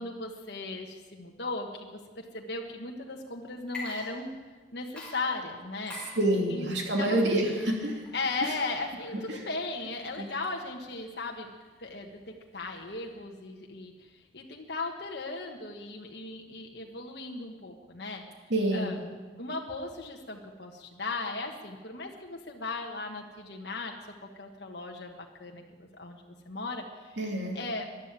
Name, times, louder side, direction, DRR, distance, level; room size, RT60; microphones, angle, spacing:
voice 1, 0.0-4.3 4.7-6.0 6.5-6.7 7.0-7.5 8.1-11.5 11.8-18.2 18.7-19.1 19.4-27.2 27.5-27.9, left 3 dB, 60° left, 1 dB, 1.4 m, -37 dB
Water / Liquid, 3.6-4.6 5.0-13.2, left 2 dB, 5° left, 4.2 m, -47 dB
voice 2, 6.2-8.0 8.4-8.5 9.3-9.4 10.2-10.3 18.5-18.9 27.2-27.6, right 1 dB, 75° right, 1 dB, 2.7 m, -27 dB
13.5 x 11.5 x 8.9 m, 1.4 s
head